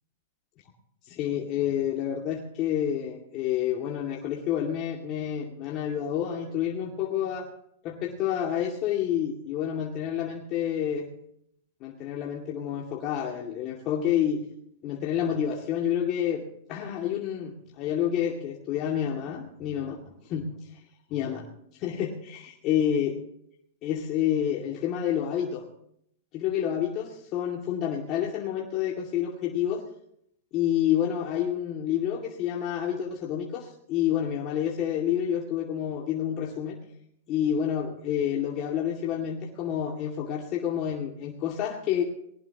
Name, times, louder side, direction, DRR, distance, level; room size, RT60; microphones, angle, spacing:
voice 1, 1.0-7.5 7.8-11.1 11.8-14.4 14.8-16.4 16.7-20.0 20.2-20.8 21.1-21.5 21.7-23.2 23.8-25.6 26.3-29.8 30.5-36.8 37.3-42.0, left 9 dB, 40° left, -1 dB, 2.3 m, -29 dB
20.0 x 18.5 x 3.0 m, 0.72 s
hypercardioid pair, 140°, 0 cm